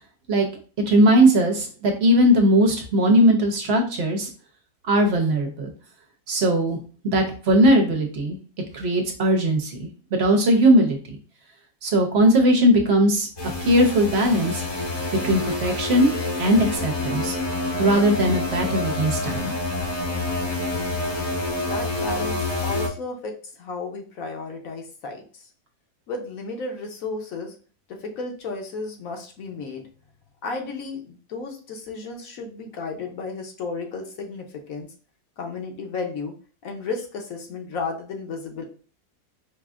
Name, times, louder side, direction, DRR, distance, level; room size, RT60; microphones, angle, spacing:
voice 1, 0.9-4.3 4.9-5.7 6.3-6.8 7.0-8.4 8.7-11.0 11.8-13.3 13.6-14.6 15.2-16.1 16.4-17.4 17.8-19.5, equal, 55° right, 3 dB, 0.9 m, -19 dB
sound 1, 13.4-22.9, left 2 dB, 25° left, 0.6 m, -27 dB
voice 2, 21.6-25.4 26.1-27.5 28.0-29.8 30.4-34.9 35.4-36.3 36.6-38.6, left 3 dB, 70° left, 2 dB, 1.1 m, -33 dB
4.8 x 2.5 x 2.4 m, 0.39 s
omnidirectional pair, 1.6 m